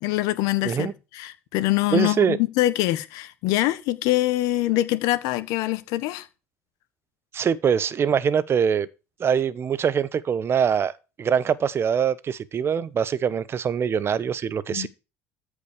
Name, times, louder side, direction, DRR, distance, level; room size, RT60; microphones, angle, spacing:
voice 1, 0.0-6.3 14.7-14.9, left 16 dB, 70° left, 1.4 m, -24 dB
voice 2, 1.9-2.4 7.3-8.9 9.2-10.9 11.2-14.9, right 7 dB, 40° right, 1.1 m, -23 dB
14.0 x 5.1 x 6.7 m
supercardioid pair, 85°, 6 cm